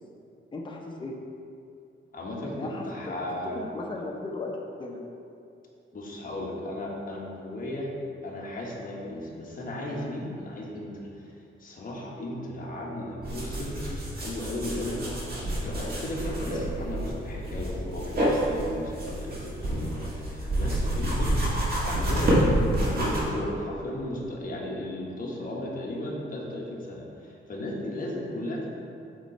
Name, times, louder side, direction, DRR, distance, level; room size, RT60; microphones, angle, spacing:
voice 1, 0.5-1.1 2.6-3.1 3.4-5.0, left 2 dB, 25° left, -1 dB, 0.7 m, -36 dB
voice 2, 2.1-3.6 5.9-7.9 8.2-13.8 14.2-15.0 15.5-21.5 21.8-22.5 22.7-28.7, left 1 dB, 40° left, -3 dB, 1.2 m, -35 dB
sound 1, 13.2-23.2, right 1 dB, 45° right, 1.6 m, -28 dB
8.1 x 3.8 x 4.4 m, 2.5 s
wide cardioid pair, 145°, 21 cm